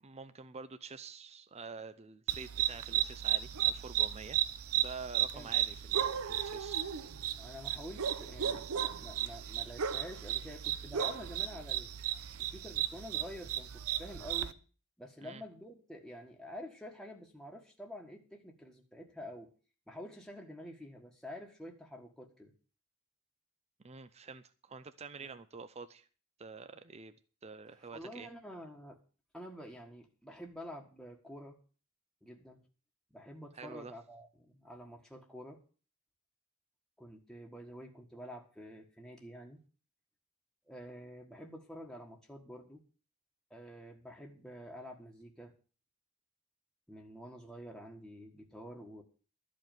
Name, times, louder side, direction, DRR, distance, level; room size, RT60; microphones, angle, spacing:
voice 1, 0.0-4.4 4.7-6.8 15.2-15.4 23.8-26.1 26.4-27.1 27.4-28.3 33.5-33.9, right 4 dB, 30° right, 0.6 m, -47 dB
sound 1, 2.3-14.5, right 11 dB, 75° right, 0.8 m, -34 dB
voice 2, 7.4-11.9 12.4-14.5 15.0-19.5 19.9-22.5 25.2-25.4 27.8-29.0 29.3-31.6 32.2-32.6 33.1-35.6 37.0-39.6 40.7-42.8 43.5-45.5 46.9-49.0, equal, ahead, 1.5 m, -48 dB
13.0 x 5.2 x 9.2 m
head